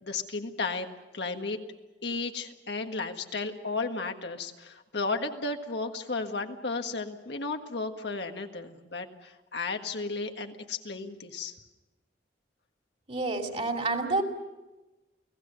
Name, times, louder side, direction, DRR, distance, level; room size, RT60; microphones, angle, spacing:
voice 1, 0.0-0.9 1.1-1.6 2.0-11.5, left 3 dB, 70° left, 5 dB, 1.7 m, -34 dB
voice 2, 13.1-14.2, right 3 dB, 35° right, 3 dB, 2.8 m, -28 dB
29.5 x 17.5 x 6.8 m, 1.1 s
head